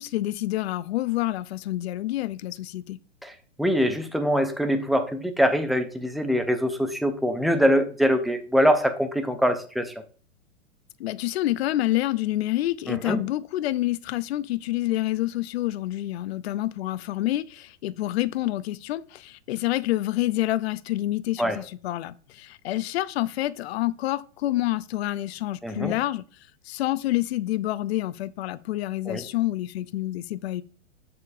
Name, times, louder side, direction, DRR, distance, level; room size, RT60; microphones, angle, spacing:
voice 1, 0.0-3.0 11.0-26.2 26.6-30.6, left 15 dB, 55° left, 0.6 m, -28 dB
voice 2, 3.6-9.9 12.9-13.2 21.4-21.6 25.6-25.9 29.1-29.2, equal, ahead, 0.3 m, -23 dB
10.5 x 6.9 x 2.6 m
hypercardioid pair, 110°, 37 cm